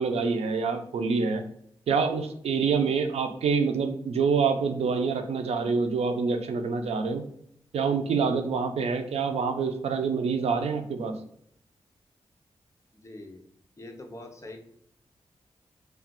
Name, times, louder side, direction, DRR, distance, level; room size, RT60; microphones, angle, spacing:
voice 1, 0.0-1.4 1.9-7.2 7.7-11.1, right 5 dB, 80° right, 7 dB, 0.4 m, -26 dB
voice 2, 12.9-13.4 13.8-14.6, left 2 dB, 30° left, 4 dB, 0.6 m, -43 dB
2.4 x 2.3 x 3.6 m, 0.72 s
cardioid pair, 70°, 11 cm